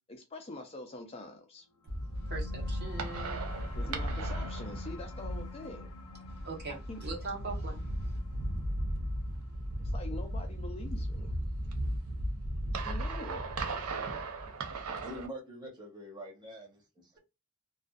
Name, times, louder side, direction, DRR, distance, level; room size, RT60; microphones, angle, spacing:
voice 1, 0.1-1.7 3.7-5.9 6.7-7.0 9.8-11.3 12.8-13.5, left 2 dB, 25° left, 0.4 m, -44 dB
sound 1, 1.9-12.8, left 5 dB, 85° left, 0.4 m, -50 dB
sound 2, 1.9-15.3, right 1 dB, 80° right, 0.5 m, -36 dB
voice 2, 2.2-3.5 6.3-6.7 7.0-8.2, right 3 dB, 50° right, 0.9 m, -41 dB
voice 3, 15.0-17.1, equal, 20° right, 0.9 m, -45 dB
2.5 x 2.3 x 2.3 m
head